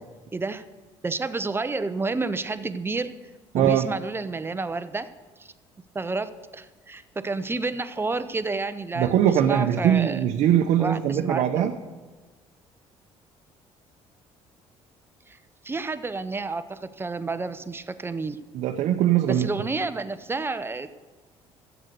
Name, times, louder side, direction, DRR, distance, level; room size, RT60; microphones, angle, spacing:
voice 1, 0.3-0.6 1.0-3.1 3.5-5.1 5.4-5.5 5.9-10.2 10.8-11.7 15.3-15.4 15.6-18.4 19.3-20.9, right 3 dB, 20° right, 12 dB, 0.7 m, -30 dB
voice 2, 3.5-3.9 9.0-11.7 18.5-19.5, right 10 dB, 70° right, 3 dB, 0.8 m, -21 dB
13.0 x 8.1 x 6.7 m, 1.3 s
cardioid pair, 90°, 12 cm